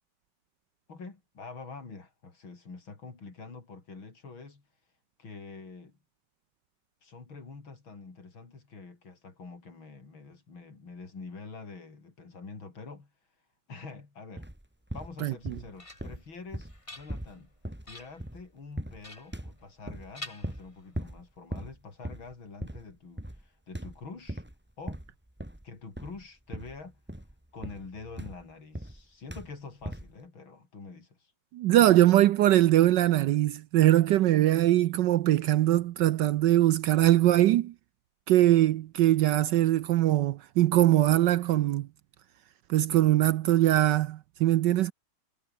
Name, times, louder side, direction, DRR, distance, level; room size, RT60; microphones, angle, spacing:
voice 1, 0.9-4.6 5.2-5.9 7.0-13.1 13.7-14.5 14.9-17.5 17.8-24.4 24.8-25.0 25.6-27.0 27.5-31.3, left 4 dB, 65° left, 5.0 m, -46 dB
sound 1, 14.4-14.6 14.9-15.7 16.0-18.5 18.8-19.1 19.3-20.1 20.4-20.7 20.9-21.2 21.5-21.8 22.0-22.3 22.6-22.9 23.2-23.5 23.7-24.5 24.9-25.7 26.0-26.2 26.5-26.8 27.1-29.0 29.3-29.6 29.8-30.1, right 1 dB, 5° right, 2.8 m, -39 dB
voice 2, 15.2-15.6 31.5-37.7 38.3-41.9 42.7-44.9, right 14 dB, 75° right, 1.0 m, -22 dB
sound 2, 15.3-16.3 16.7-17.5 17.8-18.3 19.0-19.9 20.1-21.1, left 2 dB, 15° left, 1.9 m, -47 dB
omnidirectional pair, 2.4 m